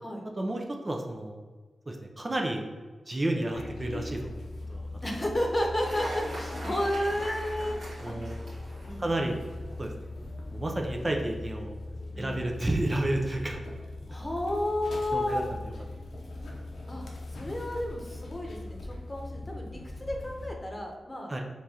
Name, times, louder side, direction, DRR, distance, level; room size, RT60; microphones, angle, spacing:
voice 1, 0.4-1.4 1.9-2.7 3.1-4.4 4.7-4.9 8.0-8.3 9.0-9.4 9.8-10.1 10.5-11.8 12.2-13.6 14.1-14.2 15.1-15.4 21.3-21.4, right 1 dB, 30° right, 2 dB, 0.5 m, -31 dB
sound 1, 3.5-20.5, left 2 dB, 80° left, 0.7 m, -40 dB
voice 2, 5.0-7.8 8.0-8.2 8.9-9.3 12.1-12.4 14.1-15.5 16.9-17.0 17.3-21.3, left 1 dB, 30° left, 1 dB, 0.9 m, -32 dB
Cheering / Applause, 5.8-9.5, right 1 dB, 70° right, 1.5 m, -41 dB
4.5 x 2.6 x 2.8 m, 1.4 s
cardioid pair, 45°, 0 cm